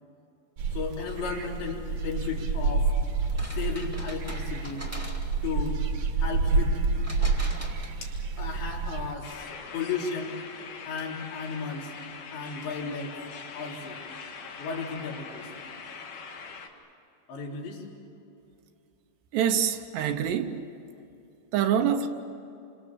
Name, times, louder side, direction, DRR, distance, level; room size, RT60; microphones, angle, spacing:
sound 1, 0.6-9.1, right 4 dB, 55° right, 2.3 m, -28 dB
voice 1, 0.7-2.9 3.5-4.8 5.4-5.8 6.2-6.8 8.0-8.1 8.4-10.4 10.9-11.9 12.3-13.2 13.5-14.0 14.6-15.5 17.3-17.9, left 5 dB, 75° left, 5.8 m, -34 dB
sound 2, 3.2-5.5 7.0-8.3, equal, 5° right, 1.3 m, -43 dB
sound 3, 9.2-16.7, left 5 dB, 55° left, 3.0 m, -42 dB
voice 2, 19.3-20.6 21.5-22.1, right 8 dB, 75° right, 3.0 m, -25 dB
29.0 x 25.5 x 7.3 m
omnidirectional pair, 5.2 m